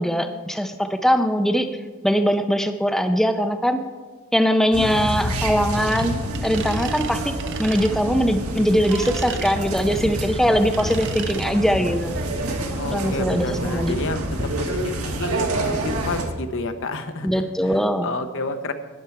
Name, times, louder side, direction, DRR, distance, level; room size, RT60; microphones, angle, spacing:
voice 1, 0.0-1.7 2.0-3.8 4.3-6.1 6.4-12.2 12.9-13.9 17.2-18.1, equal, ahead, 6 dB, 0.5 m, -21 dB
sound 1, 4.7-16.2, right 1 dB, 75° right, 1.8 m, -27 dB
sound 2, 5.9-6.1 6.3-7.1 7.4-7.9 8.8-9.6 10.7-11.5, right 8 dB, 55° right, 0.8 m, -35 dB
voice 2, 12.8-18.7, left 2 dB, 60° left, 9 dB, 0.8 m, -30 dB
12.5 x 10.0 x 4.6 m, 1.4 s
head